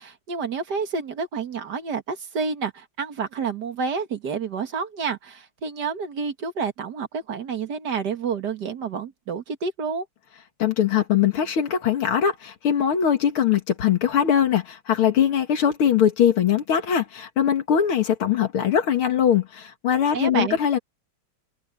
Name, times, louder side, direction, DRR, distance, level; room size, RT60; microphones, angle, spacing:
voice 1, 0.0-10.1 20.1-20.6, right 5 dB, 55° right, 2.1 m, -29 dB
voice 2, 10.6-20.8, left 9 dB, 85° left, 2.6 m, -21 dB
omnidirectional pair, 2.3 m